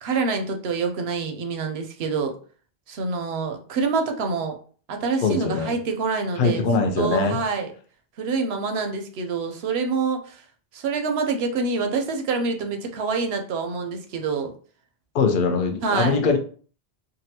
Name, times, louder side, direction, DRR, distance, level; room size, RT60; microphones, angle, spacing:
voice 1, 0.0-2.3 2.9-4.5 4.9-6.6 7.0-7.7 8.2-10.4 10.7-14.5 15.8-16.2, right 4 dB, 75° right, 5 dB, 0.8 m, -26 dB
voice 2, 5.2-5.7 6.4-7.4 15.1-16.4, left 4 dB, 60° left, 4 dB, 0.7 m, -22 dB
3.8 x 2.2 x 2.7 m, 0.43 s
omnidirectional pair, 1.1 m